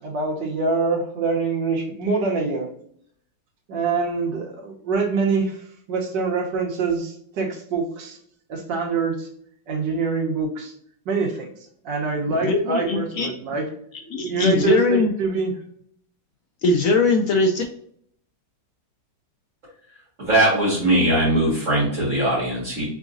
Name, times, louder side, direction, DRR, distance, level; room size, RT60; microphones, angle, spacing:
voice 1, 0.0-2.7 3.7-8.2 8.5-9.3 9.7-10.7 11.1-11.5 11.8-13.7 14.2-15.5, right 4 dB, 75° right, 1 dB, 1.6 m, -25 dB
voice 2, 12.4-13.3 14.1-15.1 16.6-17.6, left 3 dB, 75° left, 4 dB, 0.8 m, -20 dB
voice 3, 20.2-22.9, right 1 dB, 45° right, -8 dB, 2.0 m, -20 dB
3.9 x 3.6 x 2.6 m, 0.64 s
omnidirectional pair, 2.0 m